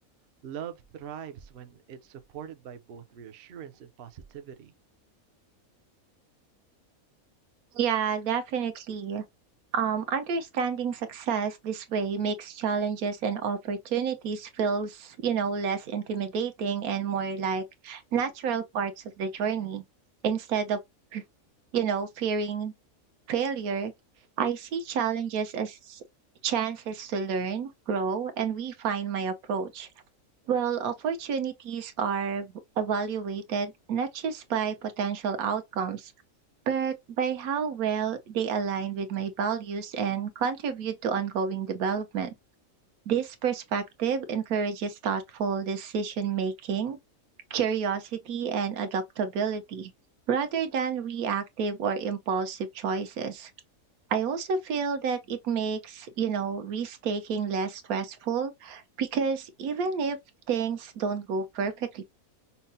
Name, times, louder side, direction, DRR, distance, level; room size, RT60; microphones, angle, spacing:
voice 1, 0.4-4.7, right 9 dB, 60° right, 0.6 m, -42 dB
voice 2, 7.7-9.2 9.7-19.8 20.2-20.8 21.1-21.2 21.7-22.7 23.3-23.9 24.4-26.0 26.4-29.9 30.5-36.1 36.7-42.3 43.1-47.0 47.5-49.9 50.3-53.5 54.1-60.2 60.5-62.0, right 6 dB, 80° right, 1.2 m, -29 dB
5.6 x 2.0 x 2.6 m
omnidirectional pair, 1.5 m